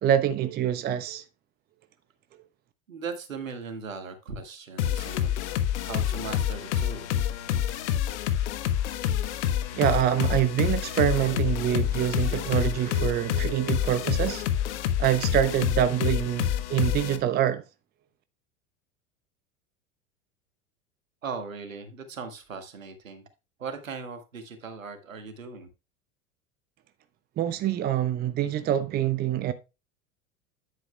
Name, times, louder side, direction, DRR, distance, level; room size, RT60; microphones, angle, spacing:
voice 1, 0.0-1.2 9.7-14.4 15.0-17.6 27.4-29.5, right 11 dB, 25° right, 0.7 m, -25 dB
voice 2, 2.9-5.3 5.8-7.1 21.2-23.2 23.6-25.7, right 5 dB, 75° right, 1.8 m, -38 dB
sound 1, 4.8-17.2, left 10 dB, 55° left, 1.1 m, -27 dB
9.8 x 8.9 x 2.2 m
figure-of-eight pair, 80°, 40 cm